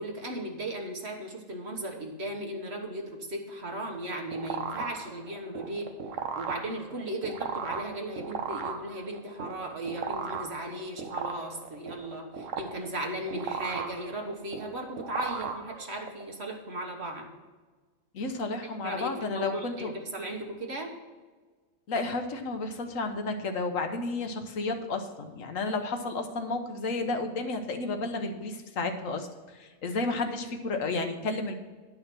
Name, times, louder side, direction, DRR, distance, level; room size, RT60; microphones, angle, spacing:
voice 1, 0.0-5.9 6.3-17.3 18.7-20.9, right 1 dB, 55° right, 2 dB, 1.6 m, -36 dB
sound 1, 3.9-16.2, right 6 dB, 80° right, 1.3 m, -37 dB
voice 2, 18.1-19.9 21.9-31.5, left 3 dB, 85° left, 6 dB, 1.4 m, -32 dB
10.5 x 5.7 x 6.0 m, 1.4 s
omnidirectional pair, 1.3 m